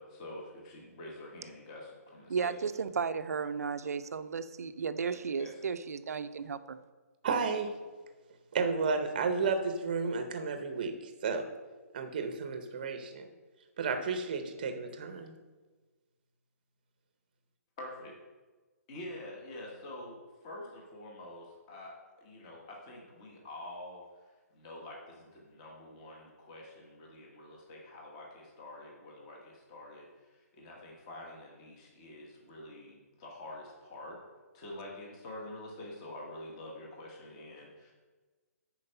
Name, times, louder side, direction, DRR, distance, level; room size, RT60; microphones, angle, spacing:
voice 1, 0.0-2.8 5.1-5.7 17.8-18.1 18.9-34.2 34.5-37.9, left 1 dB, 20° left, 1.1 m, -47 dB
voice 2, 2.3-6.8, right 6 dB, 70° right, 0.6 m, -34 dB
voice 3, 7.2-7.7 8.5-11.0 11.2-11.5 11.9-13.3 13.8-15.3, right 4 dB, 30° right, 0.8 m, -32 dB
9.7 x 4.5 x 5.5 m
hypercardioid pair, 175°, 9 cm